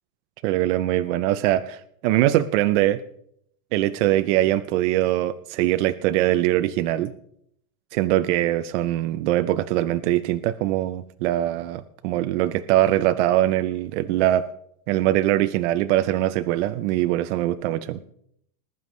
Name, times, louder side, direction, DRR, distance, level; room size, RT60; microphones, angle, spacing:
voice 1, 0.4-3.0 3.7-7.1 7.9-14.5 14.9-18.0, right 14 dB, 45° right, 11 dB, 0.6 m, -22 dB
20.5 x 11.0 x 3.2 m, 0.71 s
supercardioid pair, 145°, 49 cm